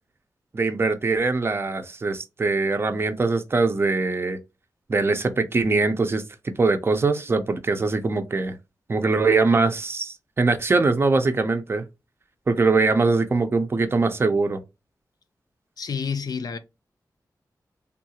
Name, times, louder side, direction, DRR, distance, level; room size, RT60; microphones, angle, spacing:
voice 1, 0.5-4.4 4.9-6.2 6.6-8.6 8.9-11.8 12.5-14.6, right 3 dB, 35° right, 0.5 m, -22 dB
voice 2, 15.8-16.6, left 6 dB, 65° left, 0.5 m, -29 dB
3.5 x 2.3 x 2.7 m
wide cardioid pair, 160°, 7 cm